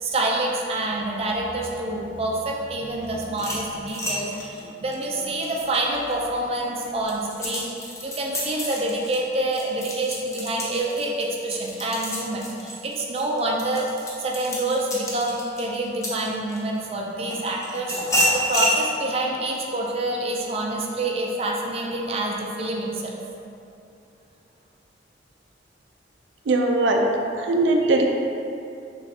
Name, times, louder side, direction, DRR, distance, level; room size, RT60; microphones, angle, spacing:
voice 1, 0.0-13.9 14.2-23.2, right 1 dB, 35° right, -2 dB, 0.5 m, -27 dB
sound 1, 3.3-6.1 6.6-16.8 17.3-18.8, equal, 15° left, 0.6 m, -29 dB
voice 2, 26.5-27.0 27.3-28.0, right 2 dB, 85° right, 1 dB, 0.4 m, -20 dB
5.7 x 3.1 x 2.7 m, 2.6 s
head